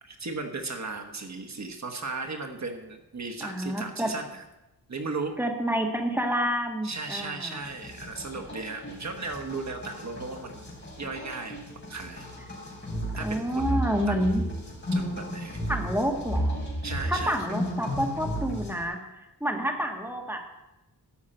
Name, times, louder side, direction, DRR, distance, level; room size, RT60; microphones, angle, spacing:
voice 1, 0.0-4.4 4.9-5.3 6.8-10.6 11.0-11.6 11.9-12.3 13.1-14.2 14.9-15.6 16.8-17.4, right 3 dB, 45° right, 4 dB, 1.2 m, -36 dB
voice 2, 3.4-4.1 5.4-7.6 13.2-14.4 15.7-16.6 17.0-20.4, equal, 5° right, 2 dB, 1.6 m, -29 dB
sound 1, 7.6-18.8, equal, 30° left, 4.0 m, -34 dB
13.0 x 5.5 x 8.8 m, 0.99 s
wide cardioid pair, 150°, 38 cm